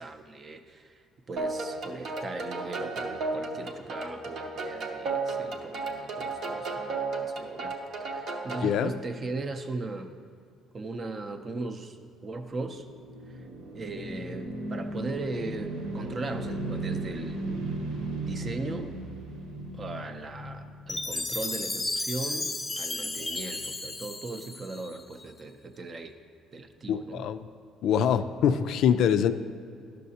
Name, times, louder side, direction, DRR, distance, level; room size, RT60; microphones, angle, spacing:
voice 1, 0.0-7.7 8.0-10.1 10.7-12.0 12.2-12.9 13.3-13.5 13.7-17.4 18.1-19.0 19.7-26.2 26.5-27.2, right 3 dB, 30° right, 7 dB, 0.5 m, -38 dB
sound 1, 1.4-8.7, right 3 dB, 60° right, 0.8 m, -34 dB
voice 2, 8.6-8.9 26.9-27.5 27.8-29.3, left 8 dB, 65° left, 10 dB, 0.3 m, -24 dB
sound 2, 12.3-21.6, right 2 dB, 85° right, 1.5 m, -36 dB
Chime, 20.9-25.1, left 2 dB, 15° left, 0.6 m, -33 dB
11.5 x 6.5 x 2.8 m, 2.4 s
cardioid pair, 125°, 0 cm